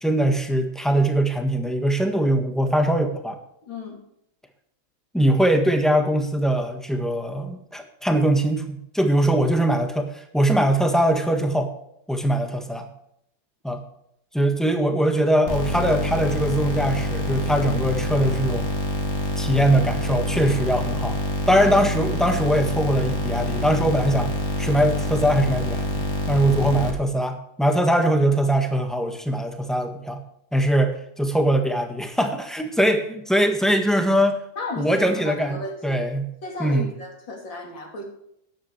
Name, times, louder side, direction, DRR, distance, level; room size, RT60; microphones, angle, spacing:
voice 1, 0.0-3.4 5.1-11.7 12.1-12.9 13.6-13.8 14.3-18.7 19.4-21.2 21.5-24.3 24.6-26.0 26.3-30.2 30.5-34.4 34.8-35.6 35.8-36.3 36.6-36.9, right 1 dB, ahead, 5 dB, 1.2 m, -21 dB
voice 2, 3.6-4.0 34.6-36.0 36.4-38.0, left 2 dB, 70° left, 1 dB, 3.5 m, -34 dB
sound 1, 15.5-26.9, left 1 dB, 35° left, 2.5 m, -26 dB
13.5 x 10.5 x 3.2 m, 0.77 s
omnidirectional pair, 2.1 m